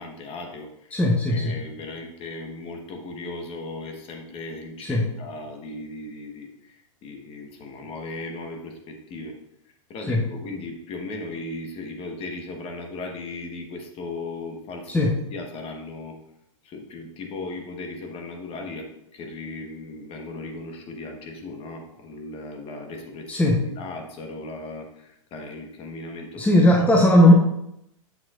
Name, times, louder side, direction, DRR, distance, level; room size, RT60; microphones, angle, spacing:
voice 1, 0.0-1.0 1.3-9.4 9.9-16.2 16.6-26.9, left 2 dB, 35° left, 3 dB, 1.3 m, -37 dB
voice 2, 0.9-1.6 4.9-5.1 10.1-10.2 14.9-15.2 23.3-23.7 26.4-27.3, left 1 dB, 10° left, -1 dB, 0.8 m, -17 dB
7.7 x 5.8 x 2.5 m, 0.79 s
hypercardioid pair, 110°, 17 cm